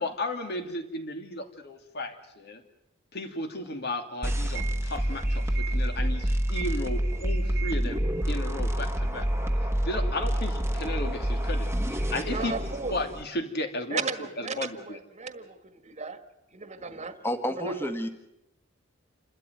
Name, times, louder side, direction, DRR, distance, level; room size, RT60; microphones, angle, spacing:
voice 1, 0.0-2.6 3.1-8.0 8.3-9.3 9.8-12.5 12.9-14.0 14.4-15.0, left 1 dB, 55° left, 5 dB, 2.7 m, -34 dB
sound 1, 4.2-13.2, right 1 dB, 15° right, 1.4 m, -28 dB
voice 2, 12.3-13.0 13.9-16.2 16.5-17.2 17.5-17.9, right 4 dB, 35° right, 9 dB, 1.6 m, -35 dB
voice 3, 17.2-18.1, equal, 10° left, 6 dB, 1.8 m, -30 dB
29.0 x 13.0 x 9.3 m, 0.89 s
head